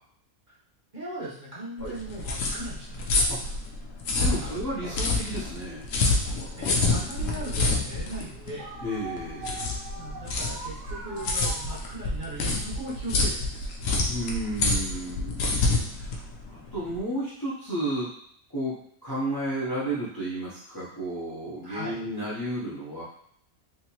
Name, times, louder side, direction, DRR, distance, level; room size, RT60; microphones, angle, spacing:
voice 1, 0.9-3.2 4.4-4.5 6.6-8.7 9.9-13.7 21.6-22.0, right 2 dB, 40° right, -8 dB, 1.1 m, -39 dB
sound 1, 1.8-17.0, left 3 dB, 70° left, 1.0 m, -27 dB
voice 2, 4.2-5.9 8.8-9.7 14.1-18.1 18.5-18.8 19.0-23.0, right 1 dB, 20° left, -9 dB, 0.6 m, -32 dB
sound 2, 6.2-11.9, right 3 dB, 65° right, 0.4 m, -43 dB
3.4 x 2.9 x 2.9 m, 0.68 s
omnidirectional pair, 1.5 m